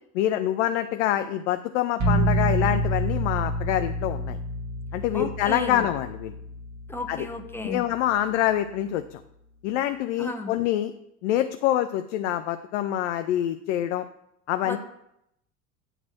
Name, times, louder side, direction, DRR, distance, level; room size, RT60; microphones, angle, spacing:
voice 1, 0.1-4.4 4.9-6.3 7.1-7.3 7.6-9.2 9.6-10.9 11.2-14.1 14.5-14.8, left 12 dB, 60° left, 9 dB, 0.6 m, -26 dB
sound 1, 2.0-7.8, right 1 dB, 40° right, 2.1 m, -28 dB
voice 2, 5.1-5.9 6.9-7.8 10.2-10.6 14.6-14.8, left 1 dB, 5° left, 3 dB, 1.1 m, -34 dB
8.9 x 4.0 x 6.3 m, 0.80 s
figure-of-eight pair, 70°, 41 cm